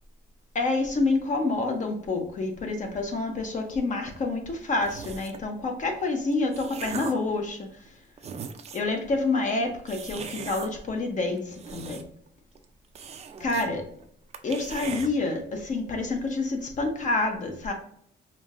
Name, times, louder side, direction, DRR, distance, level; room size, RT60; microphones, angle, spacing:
voice 1, 0.5-7.7 8.7-12.0 13.4-13.9 14.4-17.7, left 3 dB, 40° left, 4 dB, 0.8 m, -28 dB
sound 1, 4.8-5.5 6.2-7.3 7.9-8.0 8.2-8.9 9.9-10.7 11.4-12.3 12.6-12.7 13.0-13.7 14.0-14.1 14.3-15.1, right 6 dB, 35° right, 0.4 m, -39 dB
4.9 x 2.8 x 2.5 m, 0.65 s
cardioid pair, 145°, 19 cm